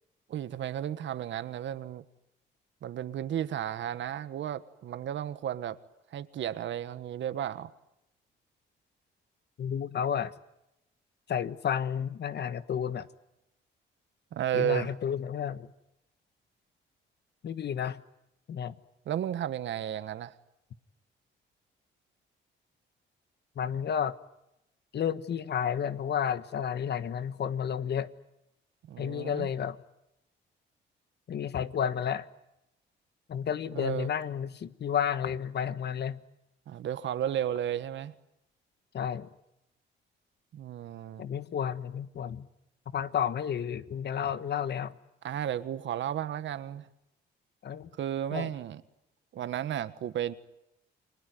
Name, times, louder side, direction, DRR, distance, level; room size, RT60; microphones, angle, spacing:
voice 1, 0.3-2.0 2.8-5.8 6.1-7.7 14.3-14.9 19.1-20.3 28.9-29.5 33.7-34.1 36.7-38.1 40.5-41.3 45.2-46.9 48.0-48.8 49.3-50.3, right 10 dB, 70° right, 13 dB, 1.5 m, -33 dB
voice 2, 9.6-10.3 11.3-13.1 14.5-15.7 17.4-18.0 18.5-18.8 23.5-24.2 24.9-28.1 29.0-29.8 31.3-32.3 33.3-36.2 38.9-39.3 41.2-42.5 42.9-44.9 47.6-47.9 48.3-48.5, left 8 dB, 55° left, 13 dB, 1.5 m, -31 dB
30.0 x 21.0 x 9.3 m, 0.87 s
cardioid pair, 90°, 20 cm